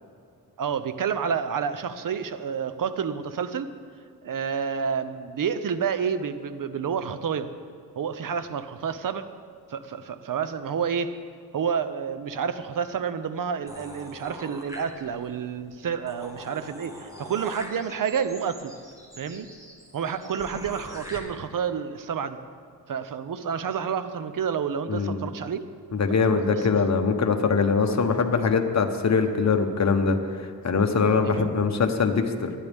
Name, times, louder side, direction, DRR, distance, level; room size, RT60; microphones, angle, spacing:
voice 1, 0.6-3.7 4.2-7.5 7.9-9.3 9.7-11.1 11.5-18.7 19.2-19.5 19.9-22.4 22.9-25.7 26.3-26.8 31.2-31.5, right 7 dB, 55° right, 11 dB, 0.8 m, -29 dB
sound 1, 13.7-15.3 15.7-15.8 16.1-21.2, equal, 10° right, 1.7 m, -43 dB
voice 2, 24.9-25.2 25.9-32.5, left 5 dB, 45° left, 5 dB, 1.2 m, -23 dB
19.5 x 11.0 x 3.6 m, 2.4 s
wide cardioid pair, 110°, 39 cm